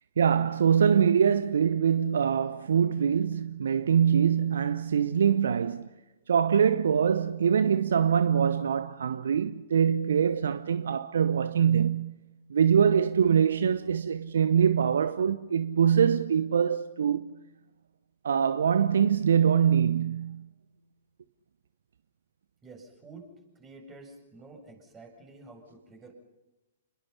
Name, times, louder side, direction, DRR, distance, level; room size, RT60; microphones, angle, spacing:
voice 1, 0.2-5.9 6.3-12.2 12.5-17.3 18.2-20.5, right 8 dB, 65° right, 0.8 m, -24 dB
voice 2, 22.6-23.3 23.5-26.1, right 3 dB, 20° right, 7.6 m, -49 dB
29.5 x 21.5 x 5.8 m
figure-of-eight pair, 115°, 0 cm